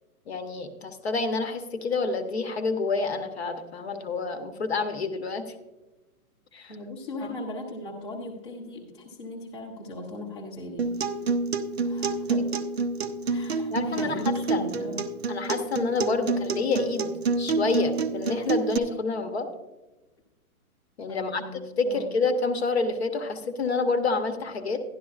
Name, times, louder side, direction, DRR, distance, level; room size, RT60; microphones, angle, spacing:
voice 1, 0.3-5.4 6.5-6.7 12.3-12.4 13.7-14.6 15.3-19.5 21.0-24.8, left 4 dB, 45° left, 8 dB, 0.9 m, -28 dB
voice 2, 6.7-10.9 11.8-12.5 13.3-15.1 21.1-22.1, left 1 dB, 20° left, -4 dB, 0.7 m, -38 dB
Acoustic guitar, 10.8-18.8, right 4 dB, 45° right, 0.5 m, -28 dB
11.5 x 11.5 x 2.4 m, 1.1 s
hypercardioid pair, 175°, 44 cm